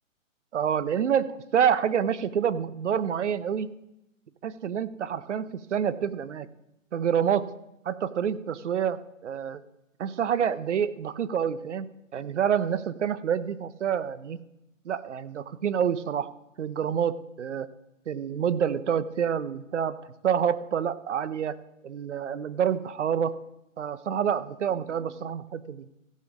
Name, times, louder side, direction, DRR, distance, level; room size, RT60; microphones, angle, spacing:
voice 1, 0.5-3.8 4.4-6.5 6.9-7.5 7.8-9.6 10.0-14.4 14.8-16.3 16.6-17.7 18.1-20.0 20.2-21.6 21.8-23.4 23.8-25.9, right 8 dB, 60° right, 16 dB, 0.9 m, -27 dB
15.5 x 5.3 x 7.2 m, 0.87 s
hypercardioid pair, 150°, 40 cm